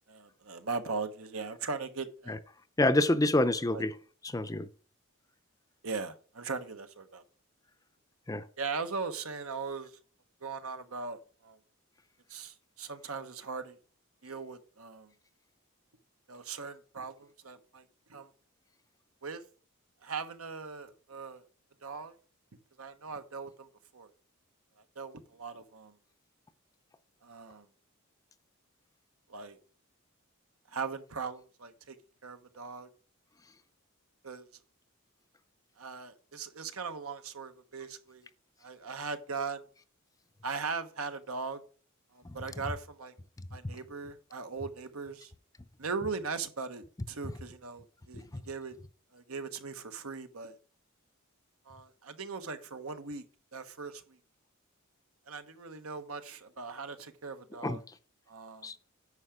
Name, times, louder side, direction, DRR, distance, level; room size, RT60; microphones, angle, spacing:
voice 1, 0.1-2.4 3.7-3.8 5.8-7.2 8.6-9.9 10.4-11.6 12.3-13.8 14.2-15.1 16.3-17.8 18.1-18.3 19.2-19.4 20.0-21.4 21.8-22.1 22.8-23.7 23.9-24.1 25.0-25.9 27.2-27.7 29.3-29.6 30.7-32.0 32.2-32.9 34.2-34.5 35.8-38.3 38.6-39.6 40.4-41.6 42.1-43.1 43.5-45.3 45.8-48.7 49.1-50.6 51.7-53.2 53.5-54.2 55.3-57.8 58.3-58.7, right 4 dB, 80° right, 1.1 m, -39 dB
voice 2, 2.8-3.9 4.2-4.7 8.3-8.4 42.2-42.4 48.1-48.2 57.6-57.8 58.6-58.7, left 2 dB, 15° left, 0.5 m, -27 dB
9.7 x 5.7 x 4.9 m
head